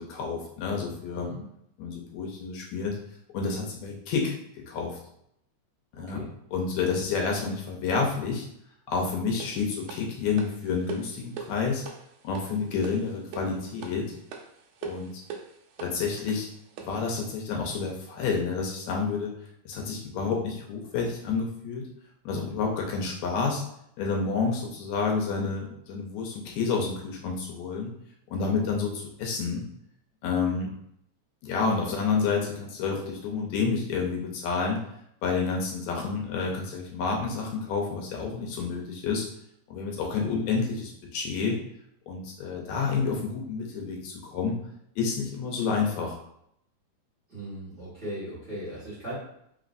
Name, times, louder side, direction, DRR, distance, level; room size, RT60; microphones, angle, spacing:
voice 1, 0.0-1.3 1.8-3.0 3.3-4.4 4.7-5.0 6.0-6.2 6.5-8.5 8.9-11.8 12.2-14.1 14.8-15.1 15.8-16.5 16.9-19.3 19.7-21.9 22.3-23.6 24.0-27.9 28.3-29.7 30.2-30.7 31.4-34.8 35.2-39.3 39.7-41.6 42.1-44.6 45.0-46.2, left 5 dB, 80° left, 0 dB, 1.9 m, -29 dB
voice 2, 1.1-1.4 5.9-6.3 47.3-49.1, right 1 dB, 30° right, -9 dB, 1.6 m, -38 dB
sound 1, 9.4-17.1, right 6 dB, 80° right, 1.6 m, -43 dB
4.0 x 3.8 x 2.5 m, 0.74 s
omnidirectional pair, 3.3 m